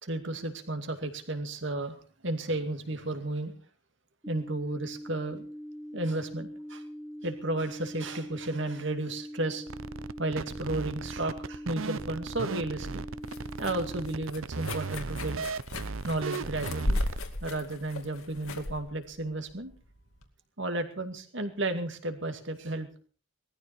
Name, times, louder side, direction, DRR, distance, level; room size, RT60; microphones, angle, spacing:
voice 1, 0.0-2.0 2.2-3.5 4.3-5.5 5.9-6.8 7.2-9.6 10.2-13.0 13.6-15.4 16.0-17.0 17.4-19.7 20.6-22.9, right 2 dB, 60° right, 7 dB, 2.4 m, -33 dB
sound 1, 4.2-14.2, equal, 10° right, 1.1 m, -42 dB
sound 2, 9.7-17.2, right 4 dB, 75° right, 0.7 m, -37 dB
sound 3, 12.5-20.3, left 1 dB, 85° left, 2.5 m, -36 dB
19.5 x 14.0 x 4.5 m, 0.39 s
head